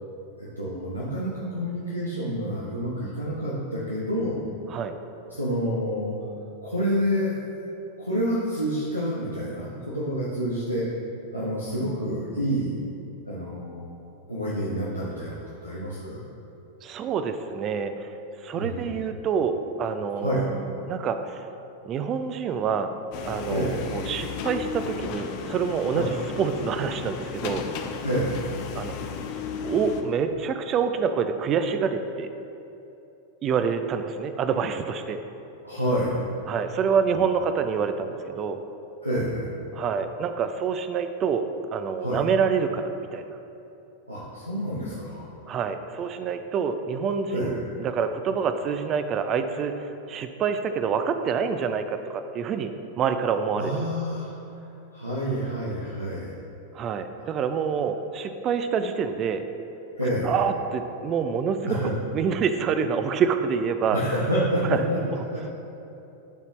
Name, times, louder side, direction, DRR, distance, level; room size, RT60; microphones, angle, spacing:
voice 1, 0.4-4.4 5.3-6.1 6.6-7.3 8.0-10.8 11.3-12.7 13.2-14.0 14.3-15.4 15.6-16.2 18.5-18.9 20.2-20.4 23.5-23.8 25.9-26.1 28.0-28.5 35.6-36.2 39.0-39.5 42.0-42.2 44.1-45.3 47.3-47.7 53.6-54.3 54.9-56.3 60.0-60.3 61.7-62.0 63.9-65.0 65.3-65.4, equal, 90° right, -8 dB, 1.0 m, -28 dB
voice 2, 16.8-18.1 18.4-21.5 21.8-22.9 23.2-27.8 28.7-29.0 29.6-32.3 33.4-35.2 36.5-38.6 39.7-41.4 41.7-43.4 45.5-49.8 50.1-53.9 56.7-59.4 60.2-64.0 64.7-64.8, right 6 dB, 30° right, 9 dB, 0.4 m, -27 dB
sound 1, 23.1-30.0, left 6 dB, 45° left, 0.5 m, -34 dB
12.0 x 4.1 x 3.0 m, 2.9 s
figure-of-eight pair, 90°, 0 cm